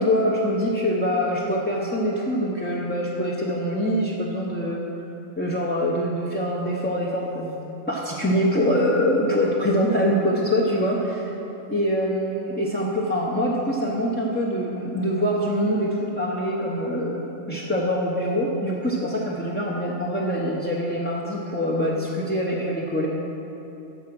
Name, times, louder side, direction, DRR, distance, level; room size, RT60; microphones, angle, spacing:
voice 1, 0.0-4.8 5.4-7.6 7.9-11.3 11.7-23.1, equal, 10° left, -5 dB, 0.6 m, -24 dB
13.5 x 4.9 x 6.1 m, 2.9 s
omnidirectional pair, 1.2 m